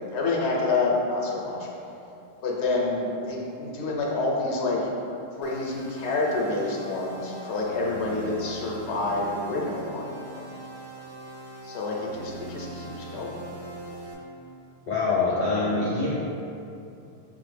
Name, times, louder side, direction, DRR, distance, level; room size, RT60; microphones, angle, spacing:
voice 1, 0.0-1.7 2.4-4.8 5.4-10.0 10.3-10.4 11.6-13.4, left 3 dB, 85° left, -2 dB, 0.9 m, -28 dB
sound 1, 5.4-14.1, right 2 dB, 85° right, 1.0 m, -41 dB
voice 2, 14.9-16.1, left 3 dB, 55° left, -7 dB, 0.6 m, -24 dB
5.9 x 2.0 x 3.2 m, 2.7 s
omnidirectional pair, 1.1 m